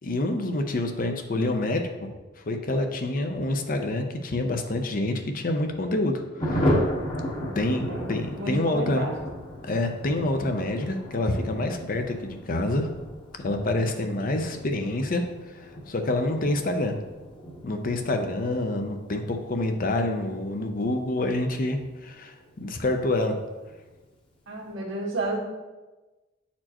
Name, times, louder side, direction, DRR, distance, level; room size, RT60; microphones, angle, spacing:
voice 1, 0.0-2.1 2.5-6.8 7.6-9.1 9.7-12.9 13.4-15.2 15.5-17.0 17.6-23.4, left 2 dB, 45° left, 5 dB, 0.6 m, -27 dB
Thunder, 6.4-22.5 22.8-22.9 23.2-23.3 23.6-24.0, equal, 30° left, 1.0 m, -34 dB
voice 2, 8.3-9.1 24.5-25.4, right 2 dB, 90° right, -3 dB, 1.6 m, -31 dB
8.8 x 4.3 x 2.9 m, 1.2 s
head